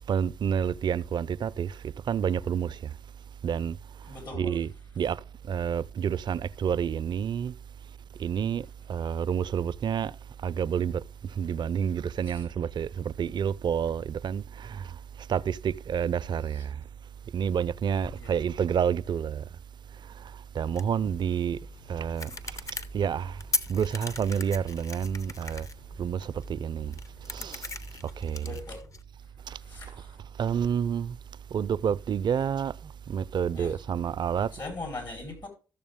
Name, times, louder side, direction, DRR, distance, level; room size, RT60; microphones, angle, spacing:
voice 1, 0.1-1.8 2.1-2.9 3.4-3.8 4.3-5.2 5.5-7.5 8.2-10.1 10.4-11.0 11.3-14.9 15.3-16.8 17.3-19.4 20.5-21.6 21.9-23.4 23.7-25.7 26.0-26.9 27.3-27.7 28.2-28.6 29.5-29.6 30.4-31.2 31.5-34.5, right 8 dB, 55° right, 0.4 m, -29 dB
voice 2, 4.1-4.5 12.3-12.4 16.5-16.6 18.2-18.4 28.4-28.8 29.5-30.2 33.5-33.8 34.5-35.5, left 3 dB, 60° left, 4.1 m, -41 dB
sound 1, 20.7-29.0, left 3 dB, 35° left, 0.8 m, -39 dB
13.5 x 6.8 x 3.6 m
supercardioid pair, 50°, 9 cm